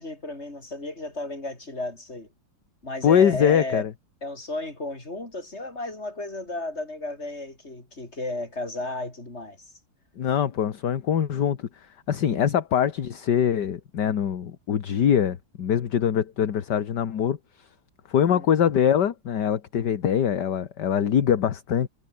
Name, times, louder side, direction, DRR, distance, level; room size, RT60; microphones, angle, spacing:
voice 1, 0.0-2.3 2.8-3.8 4.2-9.7 18.3-18.5, left 2 dB, 35° left, 5.8 m, -34 dB
voice 2, 3.0-3.9 10.2-17.4 18.1-21.9, left 8 dB, 65° left, 2.0 m, -23 dB
omnidirectional pair, 2.0 m